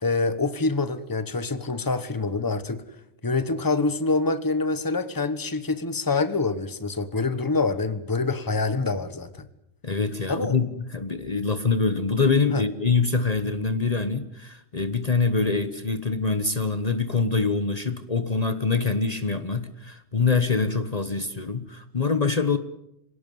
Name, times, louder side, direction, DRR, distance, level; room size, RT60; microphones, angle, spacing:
voice 1, 0.0-2.8 3.2-9.5 10.3-10.5 12.5-12.6, left 3 dB, 20° left, 1.3 m, -26 dB
voice 2, 9.8-22.6, left 4 dB, 40° left, 1.2 m, -25 dB
26.5 x 18.0 x 9.3 m
omnidirectional pair, 1.1 m